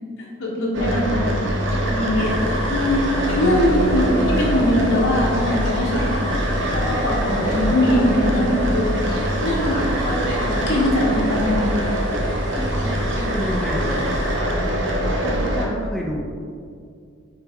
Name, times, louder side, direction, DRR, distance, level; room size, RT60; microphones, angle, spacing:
voice 1, 0.2-1.3 1.7-2.3 2.7-4.1 4.4-6.2 6.7-8.9 9.4-11.7, left 1 dB, 70° left, -5 dB, 1.2 m, -22 dB
sound 1, 0.7-15.6, equal, 60° right, 1.0 m, -23 dB
sound 2, 2.2-14.4, equal, 45° left, 1.1 m, -36 dB
voice 2, 12.5-14.0 14.5-14.6 15.2-16.2, equal, ahead, -3 dB, 0.5 m, -29 dB
6.0 x 4.7 x 3.6 m, 2.2 s
head